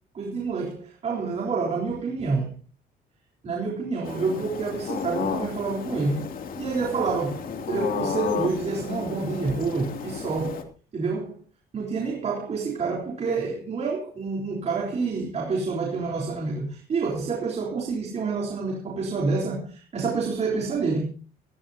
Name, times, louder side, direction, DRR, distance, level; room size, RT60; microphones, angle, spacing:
voice 1, 0.1-2.6 3.4-10.7 10.9-11.4 11.7-21.1, right 4 dB, 40° right, 3.9 m, -28 dB
sound 1, 4.0-10.6, left 7 dB, 55° left, 2.8 m, -33 dB
19.0 x 15.5 x 2.8 m
cardioid pair, 110°, 17 cm